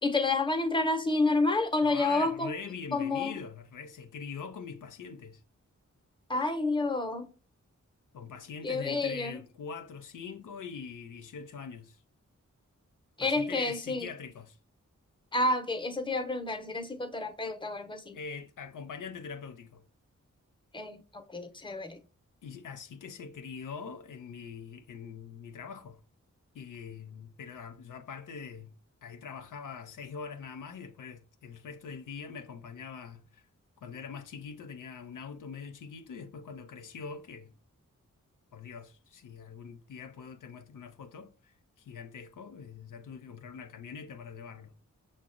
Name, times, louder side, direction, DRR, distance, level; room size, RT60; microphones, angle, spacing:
voice 1, 0.0-2.5 2.9-3.4 6.3-7.3 8.6-9.4 13.2-14.1 15.3-18.2 20.7-22.0, left 2 dB, 15° left, 0.7 m, -29 dB
voice 2, 1.8-5.4 8.1-12.0 13.2-14.6 18.1-19.8 22.4-26.0 26.5-28.8 29.0-33.4 33.8-37.5 38.5-44.8, left 6 dB, 80° left, 0.5 m, -43 dB
5.8 x 2.2 x 2.4 m
cardioid pair, 50°, 31 cm